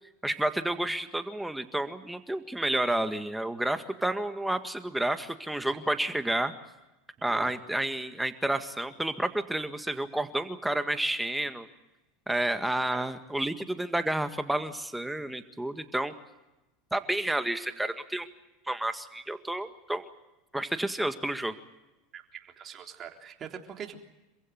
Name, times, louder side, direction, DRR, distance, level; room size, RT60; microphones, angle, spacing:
voice 1, 0.2-6.5 7.2-11.7 12.3-16.1 16.9-18.3 18.7-20.1 20.5-21.5, right 1 dB, 5° right, 9 dB, 1.8 m, -30 dB
voice 2, 22.1-24.0, right 8 dB, 35° right, 4 dB, 3.6 m, -43 dB
27.5 x 16.0 x 9.4 m, 1.0 s
hypercardioid pair, 100°, 0 cm